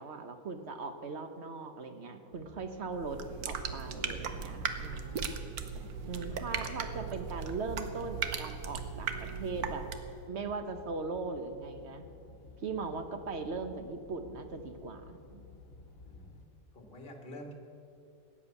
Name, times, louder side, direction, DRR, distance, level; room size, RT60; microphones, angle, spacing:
voice 1, 0.0-5.3 6.1-9.8 10.3-12.1 12.6-15.5, right 4 dB, 50° right, 8 dB, 1.2 m, -39 dB
sound 1, 2.3-16.5, left 3 dB, 60° left, 1.5 m, -54 dB
sound 2, 2.9-10.2, right 6 dB, 80° right, 1.5 m, -38 dB
voice 2, 16.7-17.5, left 1 dB, 35° left, 3 dB, 2.0 m, -48 dB
16.0 x 10.0 x 8.3 m, 2.6 s
omnidirectional pair, 1.6 m